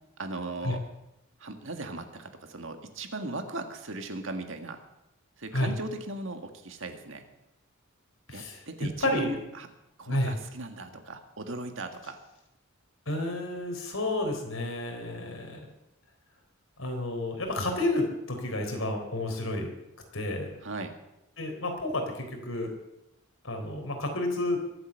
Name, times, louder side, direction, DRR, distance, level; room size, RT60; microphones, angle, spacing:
voice 1, 0.2-0.8 1.4-4.8 5.4-7.2 8.3-9.7 10.0-12.2 20.6-21.0, right 2 dB, 65° right, 6 dB, 1.9 m, -37 dB
voice 2, 8.3-8.6 9.0-9.4 10.1-10.4 13.1-15.6 16.8-19.7 20.1-20.6 21.4-22.7 23.4-24.6, left 1 dB, 75° left, 3 dB, 3.8 m, -30 dB
23.0 x 8.1 x 6.6 m, 0.88 s
head